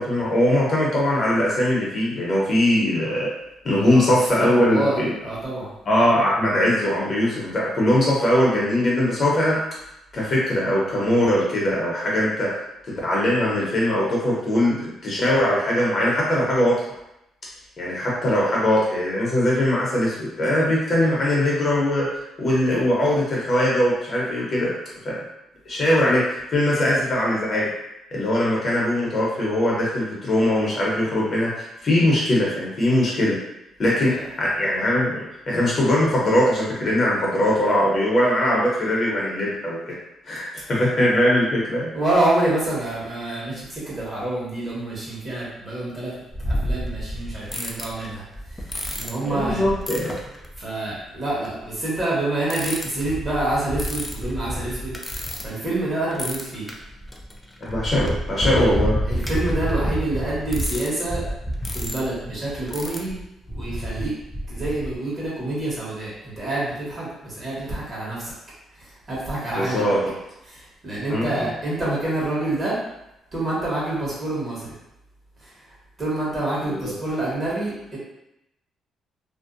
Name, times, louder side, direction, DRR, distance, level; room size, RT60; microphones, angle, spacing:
voice 1, 0.0-3.3 3.6-5.1 5.9-9.6 10.1-12.6 13.0-16.8 17.8-22.1 22.4-24.7 25.0-25.2 25.7-27.7 28.1-33.4 33.8-39.9 40.2-41.9 49.3-50.2 57.6-59.0 69.6-70.1 71.1-71.5 76.6-76.9, left 1 dB, 45° left, -4 dB, 0.8 m, -21 dB
voice 2, 3.6-5.7 34.0-34.2 41.9-48.2 48.5-49.7 50.6-54.9 55.4-56.7 58.5-58.7 59.1-61.2 61.7-63.2 63.5-64.1 64.5-68.3 68.8-69.9 70.5-72.8 73.3-74.7 75.4-75.5 76.0-78.0, right 2 dB, 30° right, -7 dB, 1.3 m, -27 dB
sound 1, 46.3-50.6 51.5-51.6 52.5-55.8 56.1-65.0, equal, 10° left, 0.4 m, -29 dB
2.6 x 2.1 x 2.5 m, 0.87 s
cardioid pair, 100°, 0 cm